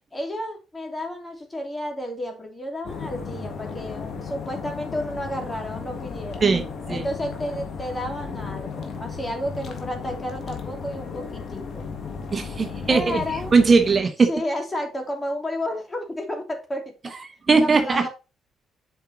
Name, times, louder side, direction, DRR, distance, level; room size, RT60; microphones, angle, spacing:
voice 1, 0.1-6.5 6.9-11.9 12.9-13.5 14.2-17.1 17.6-18.1, left 1 dB, 20° left, 3 dB, 2.7 m, -31 dB
sound 1, 2.8-14.0, left 5 dB, 60° left, 1.8 m, -35 dB
voice 2, 6.4-7.0 12.3-13.2 13.5-14.3 17.5-18.1, right 4 dB, 35° right, 5 dB, 1.1 m, -19 dB
8.0 x 5.4 x 4.0 m, 0.29 s
cardioid pair, 90°, 0 cm